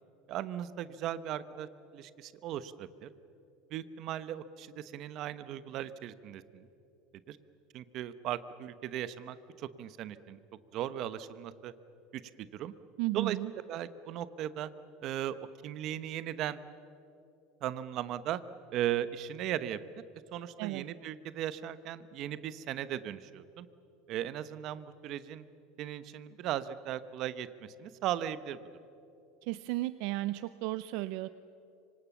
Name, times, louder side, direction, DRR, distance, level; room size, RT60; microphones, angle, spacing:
voice 1, 0.3-3.1 3.7-6.7 7.3-7.4 7.7-10.4 10.7-11.7 12.1-12.7 13.1-13.4 13.7-14.7 15.0-15.4 15.6-16.6 17.6-18.4 18.7-19.8 20.3-23.7 24.1-25.4 25.8-27.5 27.8-28.6, right 11 dB, 40° right, 14 dB, 0.9 m, -37 dB
voice 2, 13.0-13.5 20.6-20.8 29.4-31.3, right 18 dB, 55° right, 15 dB, 0.5 m, -34 dB
25.5 x 25.5 x 7.2 m, 2.8 s
supercardioid pair, 165°, 0 cm